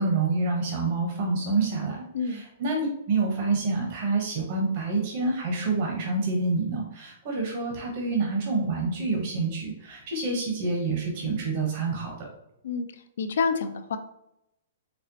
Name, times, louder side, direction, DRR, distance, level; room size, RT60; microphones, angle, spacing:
voice 1, 0.0-12.3, right 3 dB, 45° right, 0 dB, 0.9 m, -27 dB
voice 2, 13.2-14.0, left 5 dB, 75° left, 9 dB, 0.4 m, -27 dB
4.2 x 2.0 x 2.7 m, 0.80 s
hypercardioid pair, 155°, 0 cm